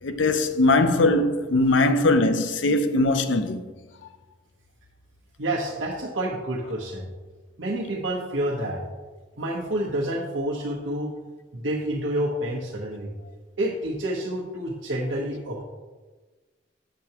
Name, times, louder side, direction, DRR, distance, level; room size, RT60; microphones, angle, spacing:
voice 1, 0.0-3.7, left 2 dB, 75° left, 0.6 m, -21 dB
voice 2, 5.4-7.1 7.6-8.8 9.4-11.1 11.5-13.1 13.6-15.6, right 1 dB, 80° right, 0.9 m, -28 dB
7.8 x 6.6 x 2.9 m
head